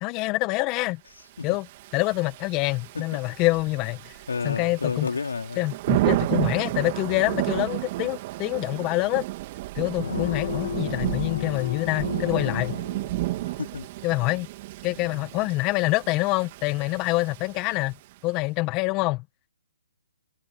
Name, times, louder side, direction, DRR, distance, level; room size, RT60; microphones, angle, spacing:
voice 1, 0.0-1.0 1.4-1.7 1.9-4.2 4.4-5.1 5.6-9.2 9.7-12.7 14.0-14.5 14.8-17.9 18.2-19.2, left 22 dB, 30° left, 1.5 m, -26 dB
Thunder / Rain, 1.5-18.1, right 18 dB, 40° right, 2.9 m, -32 dB
voice 2, 4.3-5.6 13.6-13.9, left 4 dB, 85° left, 4.1 m, -30 dB
sound 1, 10.0-13.6, left 8 dB, 65° left, 1.7 m, -33 dB
hypercardioid pair, 145°, 0 cm